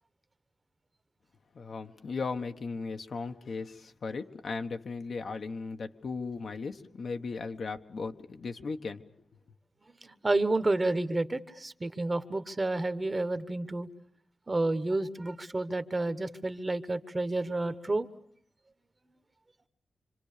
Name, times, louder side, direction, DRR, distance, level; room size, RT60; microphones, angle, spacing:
voice 1, 1.5-9.0, left 4 dB, 60° left, 6 dB, 1.4 m, -37 dB
voice 2, 10.0-13.9 14.5-18.1, right 2 dB, 25° right, 12 dB, 1.2 m, -30 dB
27.0 x 26.5 x 6.8 m, 0.63 s
wide cardioid pair, 135°, 0 cm